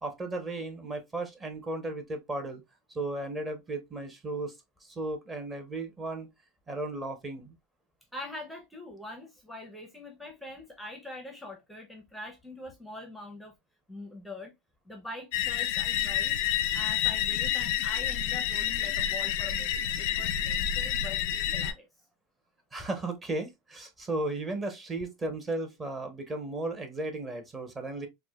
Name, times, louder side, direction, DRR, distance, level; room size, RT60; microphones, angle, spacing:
voice 1, 0.0-2.6 2.9-4.5 4.8-6.3 6.7-7.5 22.7-28.1, right 2 dB, 20° right, 0.9 m, -35 dB
voice 2, 8.1-13.5 13.9-14.5 14.9-16.4 16.7-21.2 21.5-21.9, left 1 dB, 5° left, 0.7 m, -43 dB
sound 1, 15.3-21.7, left 10 dB, 70° left, 0.4 m, -29 dB
4.7 x 2.1 x 2.3 m
supercardioid pair, 135°, 0 cm